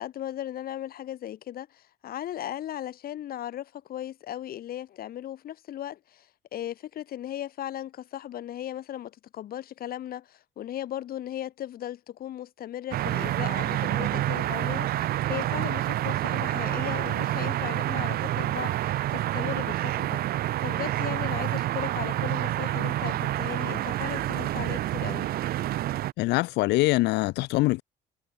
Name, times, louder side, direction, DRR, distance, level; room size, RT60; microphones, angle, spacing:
voice 1, 0.0-25.3, left 12 dB, 60° left, 4.0 m, -37 dB
sound 1, 12.9-26.1, right 14 dB, 65° right, 0.8 m, -28 dB
voice 2, 26.2-27.8, left 20 dB, 85° left, 1.1 m, -23 dB
cardioid pair, 110°, 17 cm